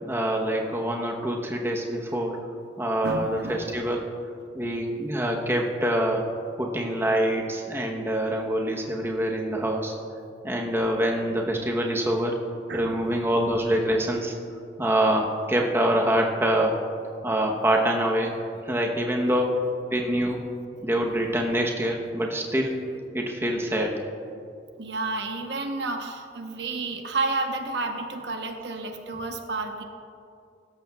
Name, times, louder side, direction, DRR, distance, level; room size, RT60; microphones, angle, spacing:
voice 1, 0.0-2.4 2.8-4.1 4.5-6.3 6.6-9.9 10.4-12.3 12.7-14.3 14.8-16.7 17.2-18.4 18.6-19.5 19.9-20.4 20.8-22.7 23.1-23.9, right 1 dB, 15° right, 0 dB, 0.9 m, -25 dB
voice 2, 3.0-3.9 12.7-13.4 17.7-17.9 22.9-23.0 24.8-29.8, right 3 dB, 80° right, 4 dB, 1.0 m, -31 dB
16.5 x 13.5 x 2.3 m, 2.5 s
head